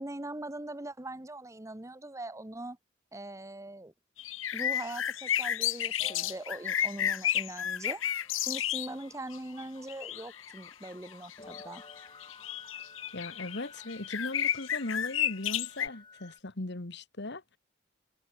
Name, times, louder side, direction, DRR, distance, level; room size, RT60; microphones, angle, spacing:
voice 1, 0.0-2.8 3.1-3.9 4.5-8.0 8.4-11.8, right 1 dB, 15° right, 1.2 m, -41 dB
sound 1, 4.2-8.9 9.3-15.9, left 10 dB, 75° left, 1.0 m, -32 dB
sound 2, 5.6-16.4, left 3 dB, 25° left, 3.7 m, -54 dB
voice 2, 13.1-17.6, left 2 dB, 60° left, 1.7 m, -38 dB
head